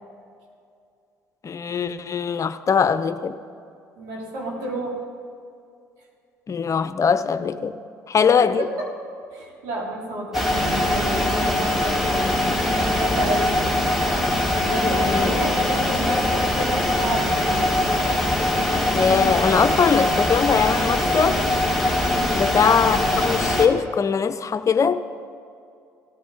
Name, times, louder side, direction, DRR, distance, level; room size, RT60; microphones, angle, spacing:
voice 1, 1.4-3.4 6.5-7.8 8.1-8.7 14.8-15.4 18.9-21.5 22.3-25.0, left 6 dB, 40° left, 0.7 m, -21 dB
voice 2, 4.0-5.0 8.4-8.9 9.3-13.7 14.6-17.7 22.1-22.4, right 1 dB, 75° right, 3.3 m, -31 dB
sound 1, 10.3-23.7, left 1 dB, ahead, 2.1 m, -22 dB
17.0 x 14.0 x 4.1 m
hypercardioid pair, 60°, 8 cm